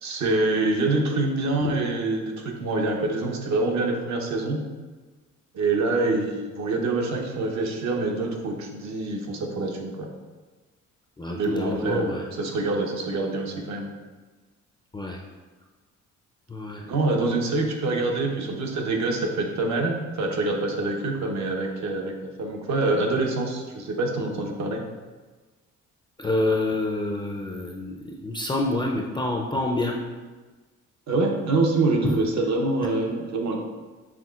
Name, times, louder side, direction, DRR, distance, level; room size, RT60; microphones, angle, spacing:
voice 1, 0.0-4.6 5.5-10.1 11.3-13.9 16.8-24.8 31.1-33.6, right 2 dB, 65° right, 2 dB, 0.9 m, -25 dB
voice 2, 11.2-12.2 14.9-15.2 16.5-16.8 26.2-27.9 28.2-29.9 32.0-32.1, left 2 dB, 15° left, 0 dB, 0.4 m, -27 dB
6.1 x 3.7 x 2.4 m, 1.3 s
cardioid pair, 90°, 30 cm